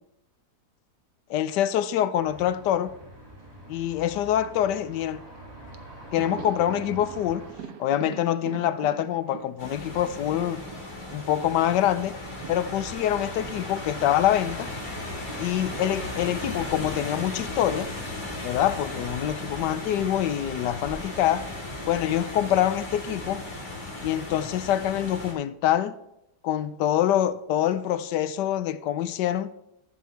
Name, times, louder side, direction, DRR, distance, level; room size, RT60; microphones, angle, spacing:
voice 1, 1.3-2.9 3.7-5.2 6.1-7.5 7.8-10.6 11.1-12.2 12.5-14.7 15.4-17.9 18.4-21.5 21.9-23.4 24.0-25.9 26.4-29.5, left 11 dB, 90° left, 1.2 m, -25 dB
sound 1, 2.2-7.5, right 1 dB, 15° right, 2.5 m, -45 dB
Thunder, 5.4-5.5 5.7-14.5 14.8-19.1 19.4-19.5 20.7-21.4, right 7 dB, 65° right, 1.2 m, -46 dB
sound 2, 9.6-25.3, left 2 dB, 30° left, 1.8 m, -36 dB
12.0 x 7.4 x 3.4 m
omnidirectional pair, 1.8 m